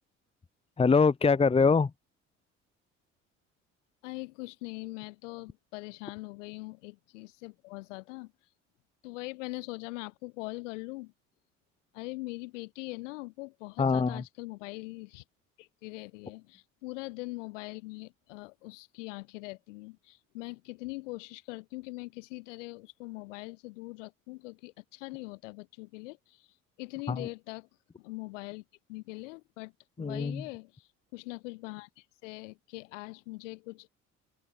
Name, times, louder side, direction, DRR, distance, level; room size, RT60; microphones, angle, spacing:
voice 1, 0.8-1.9 13.8-14.2 27.1-27.3 30.0-30.4, left 4 dB, 15° left, 0.9 m, -24 dB
voice 2, 4.0-8.3 9.0-11.1 11.9-15.2 15.6-26.5 26.8-27.7 28.0-28.6 28.9-29.7 30.0-33.9, left 23 dB, 70° left, 4.1 m, -42 dB
open air
figure-of-eight pair, 55°, 38 cm